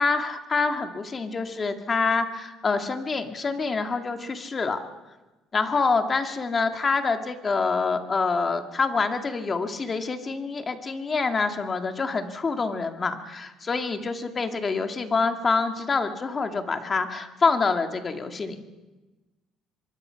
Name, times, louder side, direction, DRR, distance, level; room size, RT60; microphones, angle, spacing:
voice 1, 0.0-4.8 5.5-18.6, left 4 dB, 25° left, 7 dB, 2.1 m, -26 dB
25.0 x 22.5 x 5.8 m, 1.1 s
cardioid pair, 135°, 0 cm